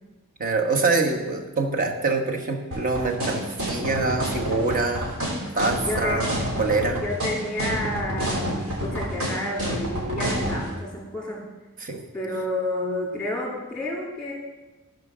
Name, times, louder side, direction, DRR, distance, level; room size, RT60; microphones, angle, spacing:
voice 1, 0.4-5.1 5.5-7.0 11.8-12.0, right 3 dB, 40° right, 3 dB, 1.2 m, -25 dB
sound 1, 2.7-10.6, equal, 65° right, 3.4 m, -28 dB
voice 2, 5.8-6.3 7.0-11.5 12.1-14.3, left 1 dB, 5° left, -3 dB, 3.0 m, -30 dB
14.0 x 5.2 x 6.2 m, 1.1 s
head